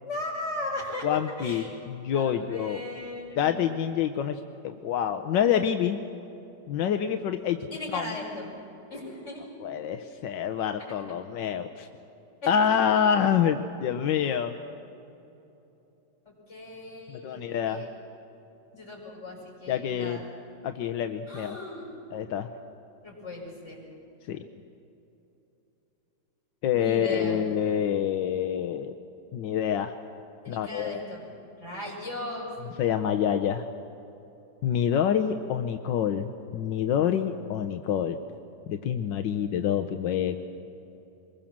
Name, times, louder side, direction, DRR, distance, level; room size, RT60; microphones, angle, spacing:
voice 1, 0.0-1.1 1.4-1.7 2.1-3.4 7.7-8.5 8.9-9.4 10.8-11.0 12.4-12.7 16.2-17.4 17.7-17.9 18.7-20.2 21.3-21.9 23.0-23.8 26.7-27.4 30.4-31.2 31.6-32.5, left 2 dB, 35° left, -3 dB, 6.9 m, -37 dB
voice 2, 1.0-2.8 3.4-6.0 6.7-7.6 7.9-8.0 9.6-11.9 12.5-14.5 17.1-17.8 19.7-20.2 20.6-21.6 22.1-22.5 24.3-24.4 26.6-28.9 29.3-29.9 30.5-31.0 32.8-33.7 34.6-38.2 38.7-40.4, left 8 dB, 85° left, 8 dB, 1.5 m, -27 dB
24.5 x 21.5 x 7.4 m, 3.0 s
omnidirectional pair, 1.9 m